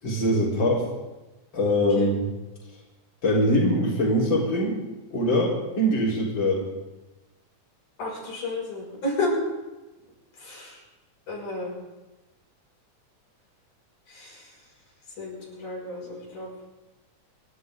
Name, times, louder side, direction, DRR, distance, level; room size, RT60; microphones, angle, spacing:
voice 1, 0.0-0.8 1.5-2.2 3.2-4.8 5.1-6.7, equal, 35° left, -5 dB, 5.1 m, -23 dB
voice 2, 8.0-9.4 10.4-10.8 11.3-11.7 14.1-14.6 15.2-16.5, left 2 dB, 85° left, -4 dB, 8.0 m, -32 dB
28.5 x 12.0 x 4.0 m, 1.1 s
omnidirectional pair, 3.5 m